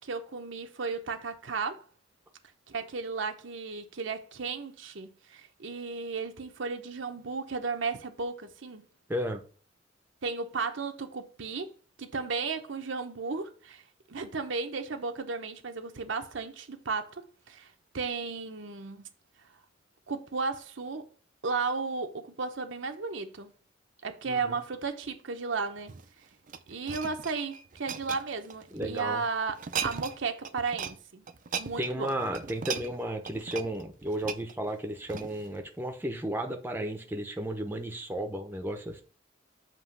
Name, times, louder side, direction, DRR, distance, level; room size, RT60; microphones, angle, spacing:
voice 1, 0.0-1.8 2.7-8.8 10.2-11.7 12.0-13.8 14.1-19.1 20.1-21.1 21.4-23.5 24.0-25.9 26.7-31.2 31.6-32.1, right 4 dB, 65° right, 0.8 m, -34 dB
voice 2, 9.1-9.4 24.3-24.6 28.7-29.2 31.8-39.0, right 1 dB, 10° right, 0.7 m, -33 dB
sound 1, 25.8-29.0 29.5-30.2 30.4-31.0 31.3-35.5 36.1-36.3, right 7 dB, 45° right, 0.5 m, -38 dB
7.4 x 3.0 x 5.8 m
head